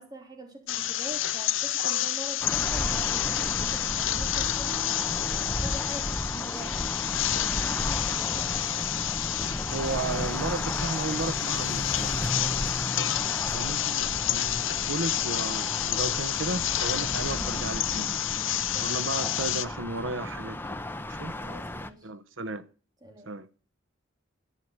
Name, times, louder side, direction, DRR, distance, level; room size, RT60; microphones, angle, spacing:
voice 1, 0.0-4.9 5.5-6.9 14.2-14.5 18.7-19.1 21.4-22.1 23.0-23.3, right 1 dB, 20° right, 3.3 m, -44 dB
sound 1, 0.7-19.6, left 13 dB, 80° left, 0.8 m, -29 dB
sound 2, 2.4-21.9, left 1 dB, 10° left, 0.8 m, -34 dB
voice 2, 9.7-12.8 13.5-18.1 18.8-20.8 21.1-21.3 22.0-22.6 23.3-23.5, right 3 dB, 75° right, 1.0 m, -34 dB
11.0 x 9.6 x 7.9 m
head